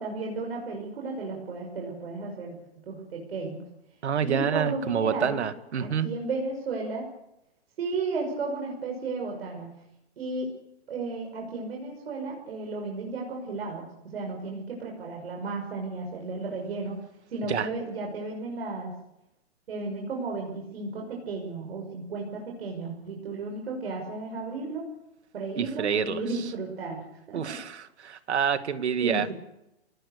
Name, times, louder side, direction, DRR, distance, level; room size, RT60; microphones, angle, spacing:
voice 1, 0.0-2.6 2.9-3.6 4.2-5.4 5.8-7.1 7.8-9.7 10.2-10.5 10.9-13.9 14.1-17.0 17.3-18.9 19.7-24.9 25.3-27.6 29.0-29.3, right 3 dB, 65° right, 1 dB, 6.1 m, -34 dB
voice 2, 4.0-6.1 17.5-17.7 25.6-26.2 27.3-29.3, right 7 dB, 85° right, 11 dB, 2.1 m, -27 dB
27.5 x 20.0 x 6.7 m, 0.88 s
hypercardioid pair, 170°, 33 cm